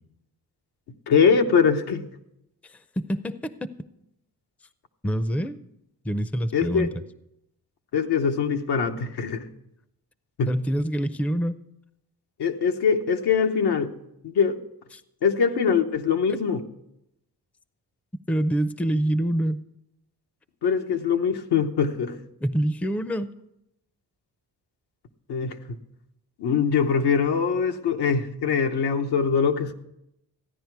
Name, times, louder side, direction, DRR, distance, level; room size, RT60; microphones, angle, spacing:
voice 1, 1.1-2.1 6.5-6.9 7.9-9.5 10.4-10.5 12.4-13.9 14.2-14.6 15.2-16.6 20.6-22.2 25.3-25.8 26.4-29.7, left 6 dB, 90° left, 1.0 m, -23 dB
voice 2, 2.6-3.7 5.0-5.6 6.0-6.9 10.5-11.5 14.9-15.0 18.3-19.6 22.4-23.3, right 1 dB, 5° left, 0.4 m, -26 dB
15.0 x 10.0 x 4.6 m
cardioid pair, 100°, 38 cm